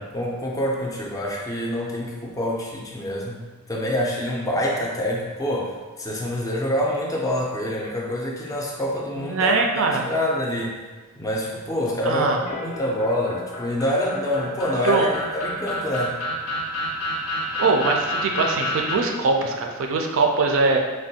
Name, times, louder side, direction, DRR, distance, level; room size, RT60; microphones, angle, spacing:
voice 1, 0.0-10.7 11.2-16.2, left 1 dB, 15° left, -2 dB, 0.4 m, -26 dB
voice 2, 9.2-10.1 12.1-12.4 14.8-15.1 17.6-20.8, right 3 dB, 65° right, 2 dB, 0.4 m, -22 dB
sound 1, 12.5-19.0, equal, 85° left, 0.7 m, -29 dB
3.3 x 2.2 x 2.7 m, 1.4 s
head